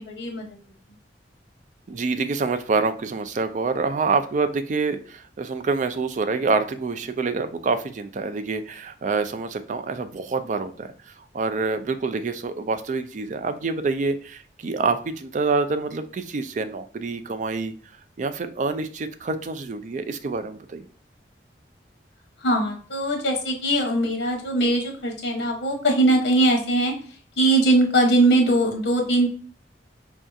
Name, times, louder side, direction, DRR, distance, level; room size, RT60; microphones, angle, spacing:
voice 1, 0.1-0.5 22.4-26.9 27.4-29.3, right 1 dB, 65° left, 1 dB, 0.9 m, -21 dB
voice 2, 1.9-17.7 18.2-20.9, right 4 dB, 45° right, 9 dB, 0.4 m, -26 dB
4.7 x 2.6 x 2.4 m, 0.43 s
head